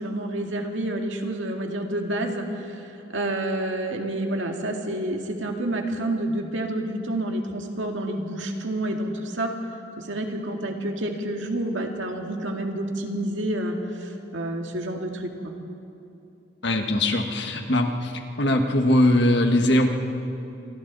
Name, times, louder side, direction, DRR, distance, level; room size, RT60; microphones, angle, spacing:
voice 1, 0.0-9.5 10.0-15.5, right 1 dB, 75° right, 2 dB, 2.1 m, -29 dB
voice 2, 16.6-18.1 18.4-19.9, left 1 dB, 60° left, 4 dB, 1.6 m, -21 dB
27.5 x 23.0 x 4.1 m, 2.8 s
head